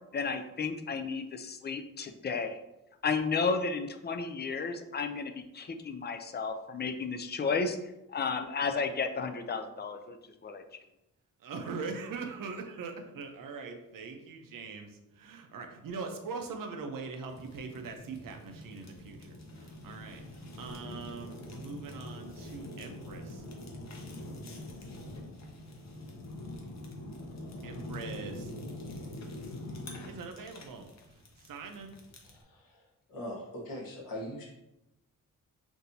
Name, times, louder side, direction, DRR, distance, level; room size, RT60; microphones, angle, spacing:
voice 1, 0.1-2.6 3.0-7.8 8.1-10.2 10.4-10.6, left 5 dB, 30° left, 7 dB, 0.4 m, -33 dB
voice 2, 11.4-20.2 20.6-23.4 27.6-28.5 30.0-30.9 31.4-32.0, right 4 dB, 75° right, 3 dB, 0.7 m, -42 dB
Fire, 17.3-32.4, left 1 dB, 50° left, 0.8 m, -44 dB
voice 3, 32.2-34.5, left 1 dB, 85° left, -2 dB, 1.2 m, -42 dB
5.9 x 2.6 x 2.7 m, 0.91 s
wide cardioid pair, 110°, 33 cm